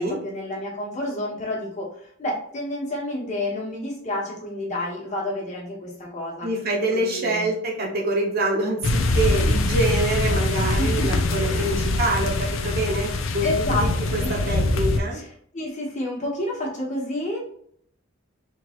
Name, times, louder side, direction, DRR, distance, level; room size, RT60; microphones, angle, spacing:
voice 1, 0.0-6.5 6.9-7.5 10.6-11.7 13.4-13.8 14.2-14.3 15.1-15.3 15.5-17.4, left 1 dB, 35° left, -4 dB, 1.2 m, -30 dB
voice 2, 6.4-15.2, right 2 dB, 50° right, -2 dB, 0.9 m, -26 dB
sound 1, 8.8-15.0, left 2 dB, 75° left, 0.5 m, -23 dB
3.8 x 3.0 x 2.9 m, 0.64 s
head